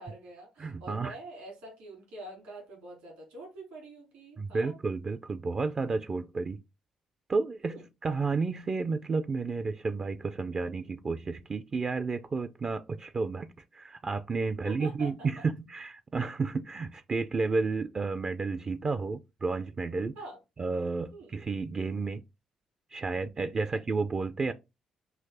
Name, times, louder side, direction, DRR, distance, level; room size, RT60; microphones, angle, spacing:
voice 1, 0.0-4.7 7.6-7.8 14.6-15.4 20.1-20.4 21.1-21.4, right 1 dB, 75° right, 2.7 m, -45 dB
voice 2, 0.6-1.2 4.4-6.6 7.3-20.2 20.6-22.2 22.9-24.5, right 4 dB, 35° right, 0.4 m, -31 dB
5.8 x 2.5 x 3.6 m
hypercardioid pair, 45°, 2 cm